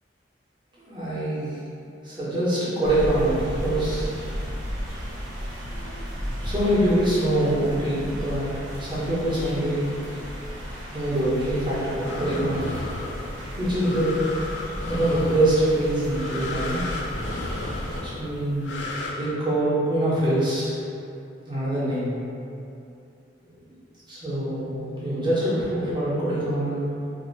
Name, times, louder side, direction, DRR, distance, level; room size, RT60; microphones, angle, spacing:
voice 1, 0.8-1.5 2.0-4.1 5.7-5.9 6.4-9.9 10.9-12.7 13.6-14.2 14.8-16.8 18.0-18.7 19.1-20.8 21.5-22.1 23.4-23.5 24.1-26.9, right 1 dB, 25° right, -10 dB, 1.0 m, -24 dB
sound 1, 2.8-18.0, equal, 80° right, 0.7 m, -34 dB
sound 2, 12.0-19.1, left 2 dB, 80° left, 0.4 m, -34 dB
2.8 x 2.1 x 3.9 m, 2.6 s
head